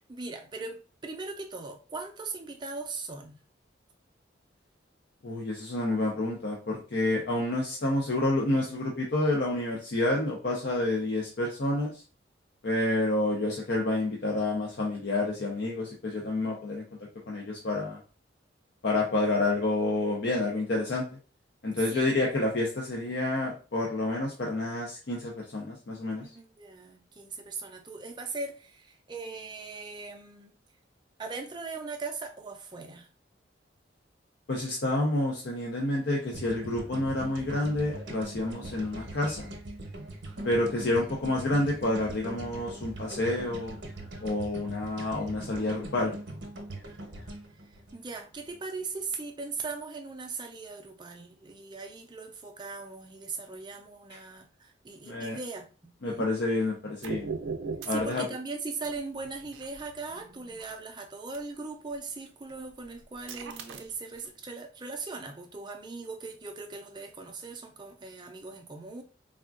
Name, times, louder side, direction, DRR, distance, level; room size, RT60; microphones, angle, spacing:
voice 1, 0.0-3.4 21.7-22.1 26.2-30.5 31.2-33.1 40.1-40.5 47.6-56.3 57.9-69.0, right 3 dB, 25° right, 0.4 m, -39 dB
voice 2, 5.2-11.9 12.6-16.8 17.3-18.0 18.8-21.0 21.6-26.3 34.5-39.5 40.4-43.8 44.2-46.1 55.0-55.4 56.0-57.3 57.9-58.3, left 2 dB, 60° left, 0.5 m, -29 dB
sound 1, 36.3-48.6, right 1 dB, 65° right, 0.7 m, -42 dB
sound 2, 57.0-58.1 58.8-60.8 61.3-61.4 61.9-62.1 62.5-64.3, right 5 dB, 90° right, 0.4 m, -39 dB
3.5 x 2.3 x 2.4 m
head